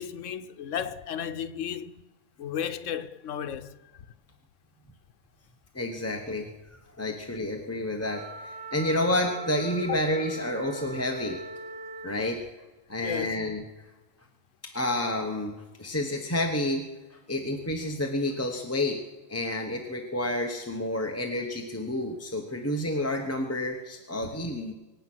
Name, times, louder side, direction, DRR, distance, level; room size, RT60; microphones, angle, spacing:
voice 1, 0.0-1.9 2.4-3.8 13.0-13.5 24.2-24.3, left 8 dB, 85° left, 1.1 m, -34 dB
voice 2, 5.7-11.4 12.0-12.4 12.9-13.6 14.6-15.5 15.8-16.8 17.1-19.0 19.3-24.7, left 1 dB, 15° left, 1.0 m, -30 dB
Wind instrument woodwind instrument, 8.0-12.3, right 2 dB, 70° right, 3.5 m, -40 dB
24.5 x 8.8 x 6.1 m
omnidirectional pair, 1.2 m